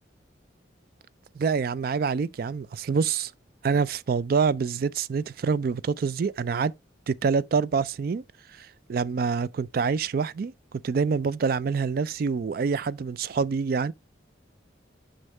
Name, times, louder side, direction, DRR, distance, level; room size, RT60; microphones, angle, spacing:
voice 1, 1.4-3.3 3.6-6.7 7.1-8.2 8.5-10.5 10.8-13.9, right 5 dB, 50° right, 0.3 m, -26 dB
6.4 x 5.4 x 3.2 m
head